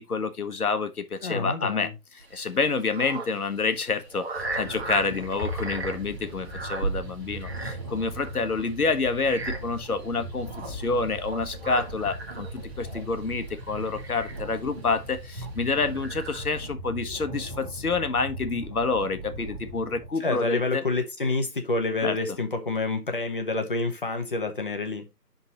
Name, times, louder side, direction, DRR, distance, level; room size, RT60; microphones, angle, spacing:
voice 1, 0.0-1.9 2.1-20.8 22.0-22.2, left 4 dB, 60° left, 1.3 m, -28 dB
voice 2, 1.2-1.9 20.2-25.1, left 3 dB, 30° left, 1.1 m, -28 dB
sound 1, 2.2-16.7, right 3 dB, 40° right, 1.5 m, -37 dB
sound 2, 4.3-20.1, equal, 15° right, 1.3 m, -39 dB
10.5 x 3.9 x 3.0 m
figure-of-eight pair, 165°, 49 cm